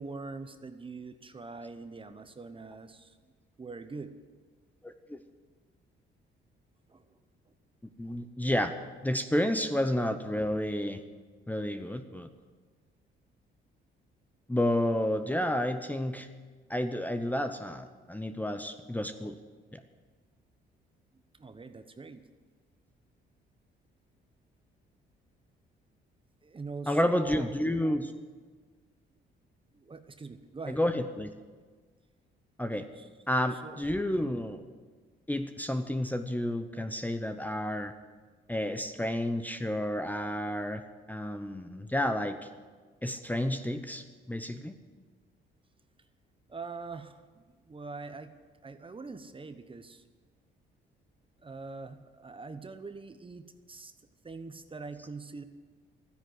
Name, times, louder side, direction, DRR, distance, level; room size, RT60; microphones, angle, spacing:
voice 1, 0.0-3.2 3.6-4.1 6.9-7.2 7.5-7.6 21.4-22.2 26.4-27.5 29.7-30.8 33.0-33.1 33.5-33.9 46.5-48.3 48.6-50.0 51.4-53.9 54.2-55.4, right 4 dB, 25° right, 10 dB, 1.0 m, -43 dB
voice 2, 8.0-8.7 9.0-11.0 11.5-12.3 14.5-16.3 16.7-19.3 19.7-19.8 26.9-28.1 30.7-31.3 32.6-32.9 33.3-34.6 35.3-37.9 38.5-40.8 41.1-42.4 43.0-44.7 55.0-55.1, left 1 dB, 10° left, 8 dB, 0.8 m, -30 dB
13.0 x 10.0 x 7.9 m, 1.5 s
cardioid pair, 90°, 20 cm